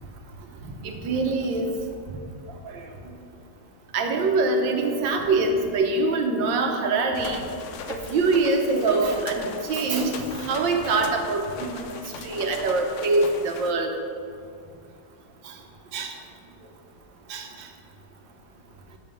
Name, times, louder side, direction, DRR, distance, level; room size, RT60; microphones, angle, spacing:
voice 1, 0.8-1.7 2.7-2.8 3.9-7.4 7.9-11.8 12.2-13.9 15.9-16.1 17.3-17.5, right 3 dB, 90° right, 3 dB, 1.6 m, -24 dB
sound 1, 7.1-13.7, left 5 dB, 75° left, 0.6 m, -39 dB
7.3 x 5.6 x 6.2 m, 2.4 s
omnidirectional pair, 1.9 m